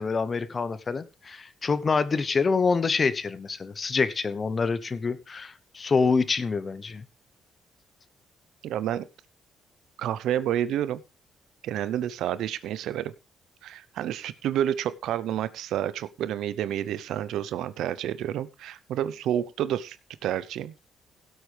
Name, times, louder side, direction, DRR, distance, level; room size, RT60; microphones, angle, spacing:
voice 1, 0.0-7.0, left 4 dB, 35° left, 15 dB, 1.0 m, -26 dB
voice 2, 8.6-9.1 10.0-11.0 11.6-13.1 13.6-20.0 20.2-20.7, right 11 dB, 80° right, 17 dB, 0.7 m, -29 dB
16.5 x 8.0 x 3.4 m, 0.27 s
cardioid pair, 90°, 0 cm